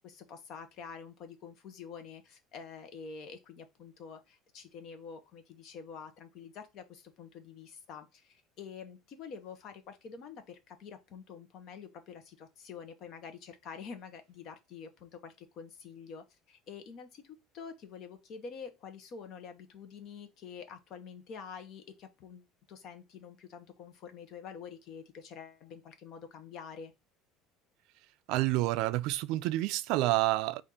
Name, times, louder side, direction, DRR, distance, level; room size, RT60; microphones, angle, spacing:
voice 1, 0.0-26.9, left 6 dB, 45° left, 0.9 m, -47 dB
voice 2, 28.3-30.6, right 17 dB, 65° right, 0.3 m, -28 dB
4.2 x 2.5 x 4.8 m
cardioid pair, 160°, 0 cm